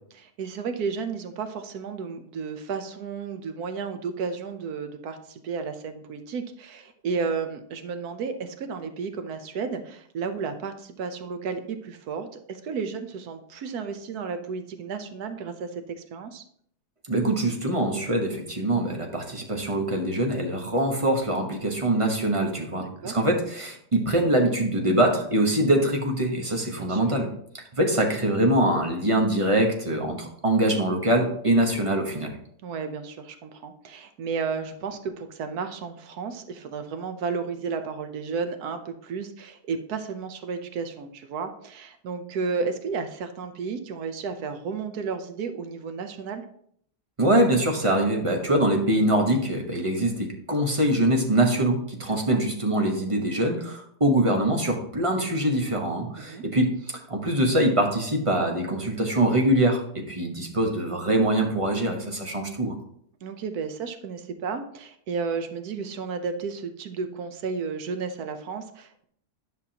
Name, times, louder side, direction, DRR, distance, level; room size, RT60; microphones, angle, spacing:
voice 1, 0.1-16.4 22.7-23.2 26.8-27.1 32.6-46.4 52.1-52.4 56.2-56.4 63.2-69.0, right 5 dB, 70° right, 8 dB, 1.2 m, -33 dB
voice 2, 17.1-27.3 27.5-32.4 47.2-62.8, right 1 dB, 25° right, 2 dB, 0.9 m, -23 dB
10.5 x 5.8 x 2.8 m, 0.65 s
omnidirectional pair, 1.7 m